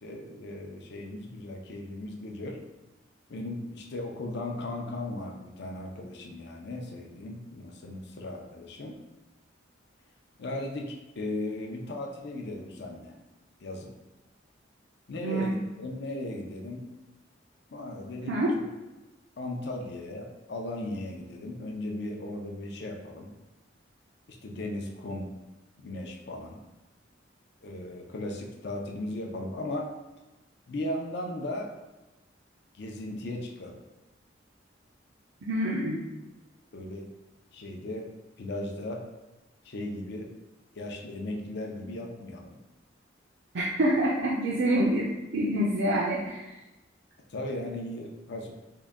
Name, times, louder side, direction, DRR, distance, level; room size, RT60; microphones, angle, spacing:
voice 1, 0.0-2.6 3.3-9.0 10.4-13.1 13.6-14.0 15.1-16.9 17.7-18.7 19.4-23.3 24.3-25.3 25.8-26.6 27.6-29.9 30.7-31.8 32.7-33.8 36.7-37.1 37.5-39.1 39.6-40.4 40.7-42.6 47.3-48.5, left 1 dB, 60° left, 2 dB, 0.5 m, -37 dB
voice 2, 35.5-36.0 43.5-46.5, right 1 dB, 65° right, -4 dB, 0.5 m, -26 dB
3.7 x 2.2 x 3.5 m, 1.0 s
head